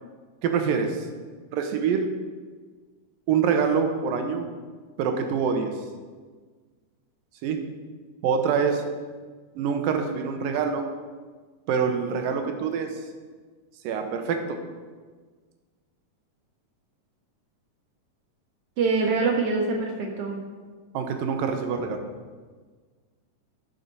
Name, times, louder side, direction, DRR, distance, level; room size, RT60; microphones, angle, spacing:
voice 1, 0.4-1.1 1.5-2.1 3.3-4.5 5.0-5.7 7.4-7.6 8.2-8.8 9.6-10.9 11.7-13.0 13.8-14.6 20.9-22.0, right 6 dB, 90° right, 5 dB, 2.6 m, -25 dB
voice 2, 18.8-20.4, right 4 dB, 55° right, 1 dB, 1.9 m, -24 dB
11.0 x 6.6 x 5.5 m, 1.5 s
omnidirectional pair, 3.9 m